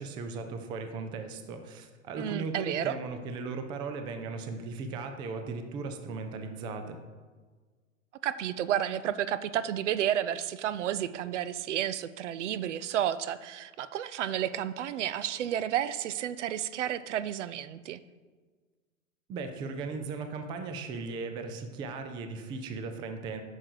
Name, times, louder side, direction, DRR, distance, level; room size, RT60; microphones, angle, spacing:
voice 1, 0.0-7.0 19.3-23.4, right 4 dB, 10° right, 7 dB, 0.4 m, -37 dB
voice 2, 2.2-2.9 8.2-18.0, right 10 dB, 65° right, 15 dB, 0.6 m, -31 dB
8.6 x 6.5 x 4.6 m, 1.4 s
hypercardioid pair, 125°, 39 cm